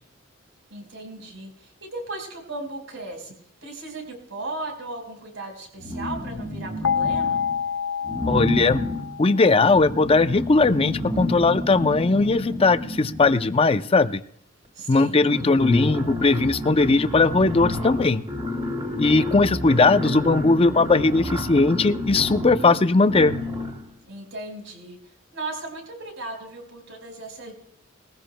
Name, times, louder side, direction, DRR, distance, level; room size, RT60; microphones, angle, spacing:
voice 1, 0.7-3.3 3.6-7.4 14.7-15.3 24.0-25.0 25.3-27.5, right 2 dB, 70° right, 3 dB, 4.5 m, -36 dB
sound 1, 5.8-7.6 8.0-13.7 14.6-14.7 15.0-23.9, left 1 dB, 30° right, 3.1 m, -30 dB
sound 2, 6.8-9.8, left 7 dB, 75° left, 0.7 m, -27 dB
voice 2, 8.3-8.9 9.2-14.2 14.9-18.2 19.0-23.4, left 3 dB, 30° left, 11 dB, 0.5 m, -19 dB
21.0 x 15.0 x 2.2 m, 0.67 s
head